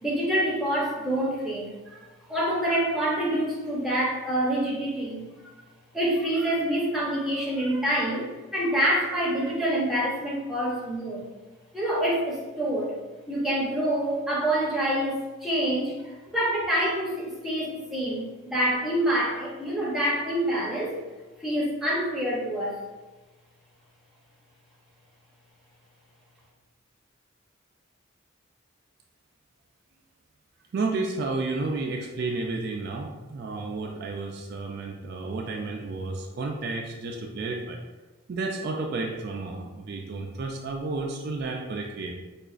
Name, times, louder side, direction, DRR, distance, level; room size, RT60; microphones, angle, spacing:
voice 1, 0.0-2.0 2.3-5.3 5.9-11.2 11.7-12.9 13.3-21.0 21.4-22.8, right 1 dB, ahead, -5 dB, 0.6 m, -26 dB
voice 2, 30.7-37.8 38.3-42.1, right 3 dB, 50° right, 0 dB, 0.3 m, -31 dB
4.7 x 2.4 x 2.4 m, 1.2 s
head